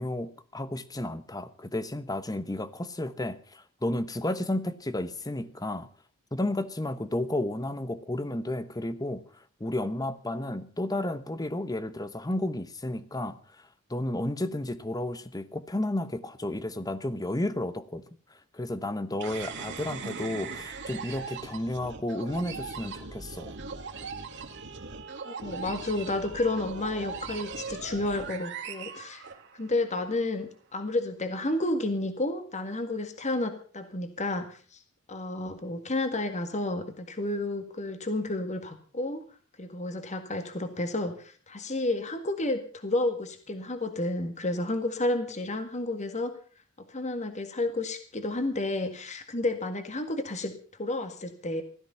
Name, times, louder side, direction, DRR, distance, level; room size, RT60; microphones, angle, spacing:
voice 1, 0.0-5.9 6.3-18.0 18.5-23.5, left 1 dB, 15° left, 13 dB, 1.0 m, -32 dB
sound 1, 19.2-29.8, right 5 dB, 55° right, 2.2 m, -39 dB
voice 2, 25.2-29.2 29.5-34.8 35.1-39.2 39.6-46.3 46.9-50.5 50.8-51.6, left 2 dB, 35° left, 8 dB, 1.9 m, -31 dB
16.5 x 13.5 x 5.7 m, 0.42 s
head